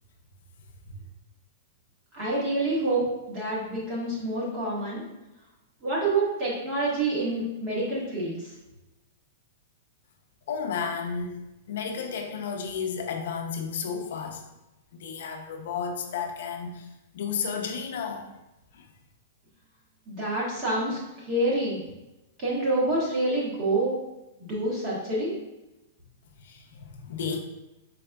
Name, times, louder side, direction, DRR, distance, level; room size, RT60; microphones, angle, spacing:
voice 1, 2.1-5.0 5.8-8.5 20.1-21.8 22.4-23.9 24.4-25.3, right 2 dB, 25° right, -5 dB, 1.3 m, -27 dB
voice 2, 10.5-14.4 14.9-16.9 17.1-18.2 18.7-18.9 26.4-27.4, left 6 dB, 60° left, 2 dB, 0.6 m, -32 dB
4.9 x 4.2 x 2.3 m, 0.98 s
supercardioid pair, 175°, 0 cm